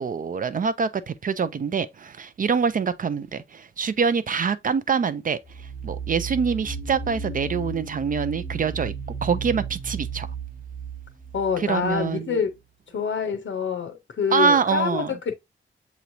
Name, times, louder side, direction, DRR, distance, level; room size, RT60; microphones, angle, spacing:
voice 1, 0.0-5.4 5.8-8.9 9.2-10.3 11.6-12.3 14.3-15.1, right 6 dB, 40° right, 0.4 m, -25 dB
sound 1, 5.4-12.1, right 4 dB, ahead, 0.9 m, -34 dB
voice 2, 11.3-12.5 12.9-15.3, left 7 dB, 70° left, 0.6 m, -26 dB
6.8 x 3.0 x 2.6 m
wide cardioid pair, 130°, 21 cm